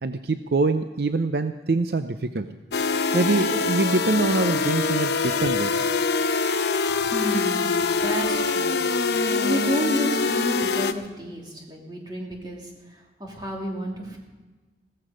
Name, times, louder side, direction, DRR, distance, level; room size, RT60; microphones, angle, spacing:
voice 1, 0.0-2.5 3.1-5.9, right 3 dB, 60° right, 9 dB, 0.6 m, -24 dB
sound 1, 2.7-10.9, left 4 dB, 75° left, 0.8 m, -24 dB
voice 2, 7.0-14.2, equal, 25° right, -1 dB, 2.8 m, -31 dB
16.5 x 14.0 x 5.1 m, 1.3 s
head